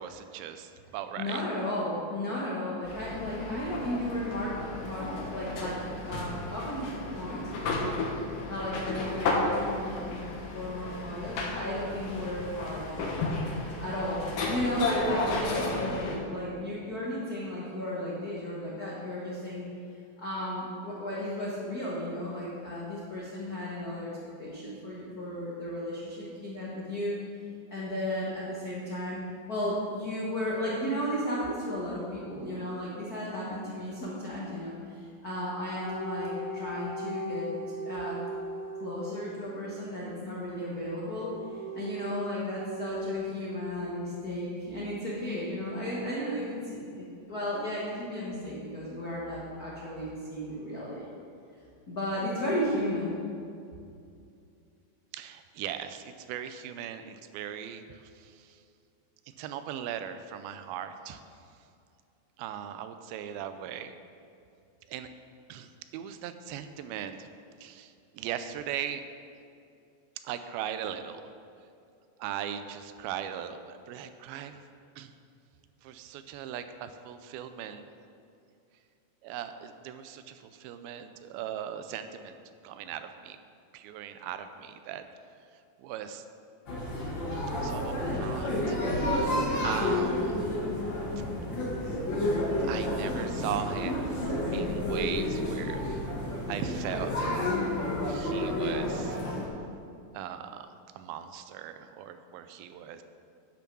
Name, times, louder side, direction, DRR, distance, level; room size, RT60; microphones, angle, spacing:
voice 1, 0.0-1.4 55.1-58.6 59.4-61.2 62.4-63.9 64.9-65.1 65.5-67.3 67.6-69.1 70.2-71.2 72.2-74.5 75.0-75.1 75.8-77.9 79.2-82.4 82.6-83.4 83.7-85.1 85.8-86.2 87.3-90.4 92.6-96.0 96.5-97.4 97.8-99.2 100.1-100.7 101.0-103.0, right 9 dB, 90° right, 9 dB, 2.4 m, -39 dB
voice 2, 1.2-5.8 6.0-7.4 7.7-8.0 8.5-10.2 10.5-13.1 13.8-19.7 20.2-24.1 24.4-27.2 27.7-29.2 29.5-37.5 37.8-38.2 38.8-51.0 51.9-53.2, left 1 dB, 85° left, -6 dB, 0.8 m, -34 dB
sound 1, 2.8-16.2, left 2 dB, 70° left, 2.8 m, -33 dB
sound 2, 35.8-39.8 41.1-43.3, right 1 dB, 65° right, 3.8 m, -38 dB
sound 3, 86.7-99.5, left 1 dB, 50° left, 1.4 m, -30 dB
10.5 x 5.9 x 6.2 m, 2.5 s
omnidirectional pair, 4.2 m